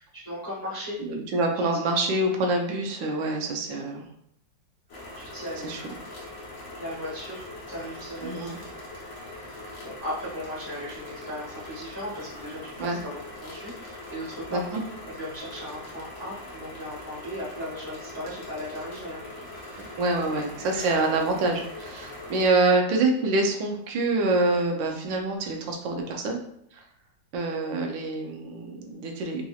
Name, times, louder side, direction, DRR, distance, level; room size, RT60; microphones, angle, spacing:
voice 1, 0.0-1.0 1.5-1.7 5.2-5.7 6.7-8.5 9.5-20.0 20.3-21.0 22.1-22.3 22.6-22.8, left 1 dB, 15° left, -7 dB, 1.0 m, -38 dB
voice 2, 1.0-4.0 5.6-5.8 8.2-8.6 12.8-13.0 14.5-14.8 19.8-26.4 26.7-26.8 27.3-29.4, right 2 dB, 85° right, 2 dB, 1.4 m, -26 dB
sound 1, 4.9-22.5, left 2 dB, 50° left, 1.3 m, -42 dB
4.3 x 2.7 x 2.3 m, 0.71 s
omnidirectional pair, 2.0 m